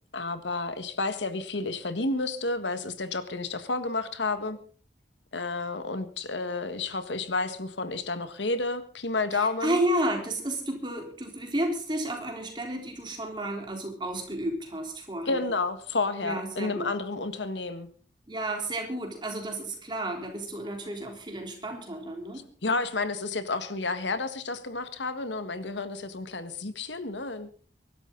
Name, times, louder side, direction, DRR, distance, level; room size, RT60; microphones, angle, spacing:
voice 1, 0.1-4.6 5.3-9.8 15.2-17.9 22.6-27.5, left 3 dB, 85° left, 10 dB, 1.7 m, -31 dB
voice 2, 9.3-15.5 16.2-16.9 18.3-22.4, right 1 dB, 25° right, 2 dB, 3.8 m, -32 dB
23.5 x 12.5 x 3.9 m, 0.41 s
head